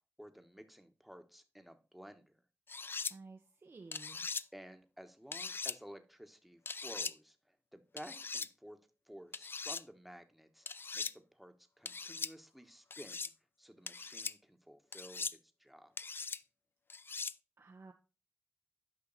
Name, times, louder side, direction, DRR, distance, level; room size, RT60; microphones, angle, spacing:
voice 1, 0.2-2.4 4.5-8.8 9.1-10.7 10.9-13.3 13.6-15.9, equal, ahead, 7 dB, 1.2 m, -54 dB
sound 1, 2.7-3.1 3.9-4.4 5.3-5.8 6.7-7.1 8.0-8.5 9.3-9.8 10.7-11.1 11.9-12.3 12.9-13.3 13.9-14.3 14.9-15.4 16.0-16.4 16.9-17.3, left 4 dB, 45° left, 0.3 m, -40 dB
voice 2, 3.1-4.3 17.6-17.9, right 3 dB, 50° right, 3 dB, 0.9 m, -54 dB
8.9 x 5.6 x 4.0 m, 0.32 s
cardioid pair, 65°, 5 cm